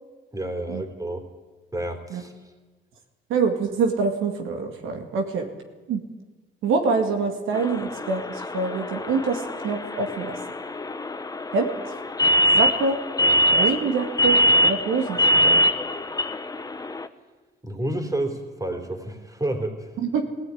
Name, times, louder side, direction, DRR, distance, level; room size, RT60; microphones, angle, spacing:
voice 1, 0.3-1.3 1.7-2.3 17.6-19.9, right 1 dB, 15° right, 5 dB, 3.5 m, -30 dB
voice 2, 3.3-5.5 5.9-6.0 6.6-10.4 11.5-11.9 12.5-13.0 13.5-15.6 20.0-20.2, right 4 dB, 85° right, 4 dB, 2.3 m, -25 dB
sound 1, 7.5-17.1, equal, 20° left, 1.1 m, -23 dB
17.5 x 16.5 x 9.6 m, 1.3 s
cardioid pair, 90°, 20 cm